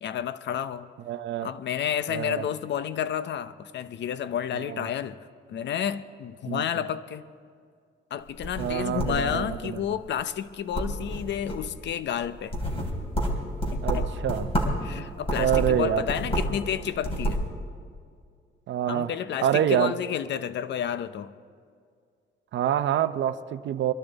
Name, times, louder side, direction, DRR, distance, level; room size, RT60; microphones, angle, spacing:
voice 1, 0.0-0.9 1.4-5.2 5.5-7.2 8.1-12.5 13.7-14.1 14.8-17.4 18.9-21.3, left 9 dB, 65° left, 0.7 m, -30 dB
voice 2, 1.1-1.5 2.1-2.4 4.5-4.9 6.4-6.6 8.6-9.8 13.8-14.5 15.4-16.0 18.7-19.1 19.4-19.9 22.5-23.9, right 10 dB, 70° right, 0.7 m, -26 dB
sound 1, 8.3-9.8 10.2-10.5 10.7-11.8 12.2-14.9 15.2-16.6 16.9-17.5, equal, 30° left, 3.6 m, -29 dB
23.0 x 12.5 x 4.0 m
cardioid pair, 90°, 20 cm